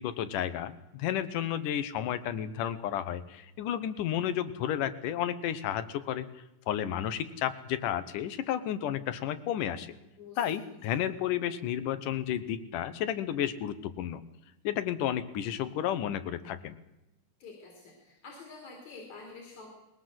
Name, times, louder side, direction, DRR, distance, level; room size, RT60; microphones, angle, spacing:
voice 1, 0.0-6.3 6.7-10.0 10.4-14.2 14.6-16.8, left 10 dB, 85° left, 13 dB, 2.7 m, -32 dB
voice 2, 17.4-19.8, left 4 dB, 60° left, 1 dB, 4.8 m, -48 dB
20.5 x 18.0 x 7.7 m, 0.92 s
omnidirectional pair, 3.6 m